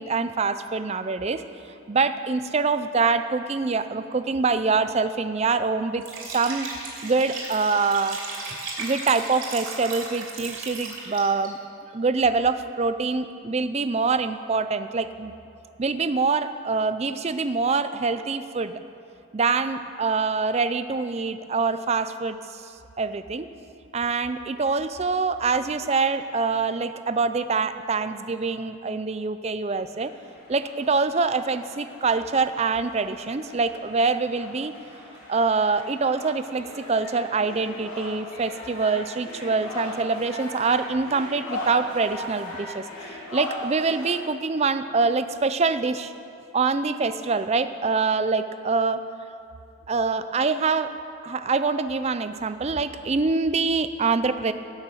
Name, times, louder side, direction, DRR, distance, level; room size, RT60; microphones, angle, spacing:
voice 1, 0.0-1.4 1.9-6.7 7.0-8.2 8.8-11.6 11.9-15.3 15.8-18.8 19.3-22.7 23.0-23.5 23.9-30.1 30.5-34.7 35.3-42.8 43.3-46.1 46.5-49.0 49.9-50.9 51.2-54.5, right 4 dB, 30° right, 11 dB, 0.4 m, -25 dB
Liquid, 6.0-11.5, right 3 dB, 75° right, 3.1 m, -36 dB
sound 1, 29.9-44.2, left 1 dB, 90° left, 3.5 m, -38 dB
17.0 x 6.4 x 7.2 m, 2.6 s
head